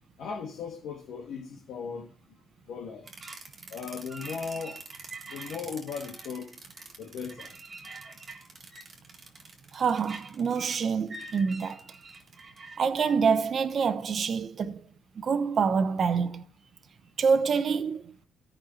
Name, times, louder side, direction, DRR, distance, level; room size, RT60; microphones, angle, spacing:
voice 1, 0.2-2.1 2.7-3.0 3.7-4.8 5.3-6.5 7.0-7.5, left 6 dB, 80° left, 1.5 m, -37 dB
sound 1, 3.1-13.1, right 3 dB, 35° right, 1.8 m, -45 dB
voice 2, 9.7-11.8 12.8-14.8 15.2-16.4 17.2-18.1, right 5 dB, 50° right, 0.8 m, -26 dB
14.0 x 5.5 x 6.9 m
cardioid pair, 90°, 0 cm